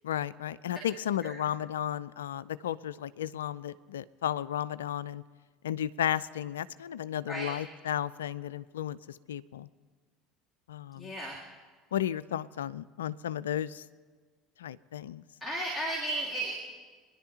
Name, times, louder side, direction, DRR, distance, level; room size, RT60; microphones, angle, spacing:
voice 1, 0.0-5.2 5.6-9.7 10.7-11.1 11.9-13.8 14.6-15.2, left 10 dB, 75° left, 17 dB, 0.3 m, -34 dB
voice 2, 11.0-11.4 15.4-16.6, right 1 dB, 10° left, -4 dB, 2.9 m, -34 dB
25.0 x 10.5 x 2.8 m, 1.5 s
figure-of-eight pair, 70°, 0 cm